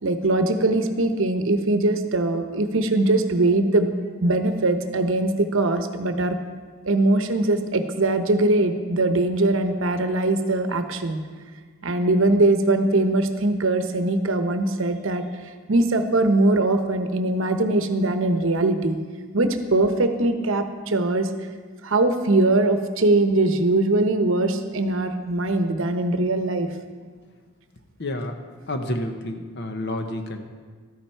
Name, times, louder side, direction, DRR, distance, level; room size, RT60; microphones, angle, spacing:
voice 1, 0.0-3.9 4.2-6.4 6.8-11.2 11.8-15.2 15.7-19.0 19.3-21.5 21.8-26.7, right 2 dB, 65° right, 8 dB, 0.8 m, -21 dB
voice 2, 28.0-28.4 28.6-30.4, left 1 dB, 50° left, 6 dB, 1.0 m, -29 dB
13.0 x 9.9 x 4.5 m, 1.5 s
head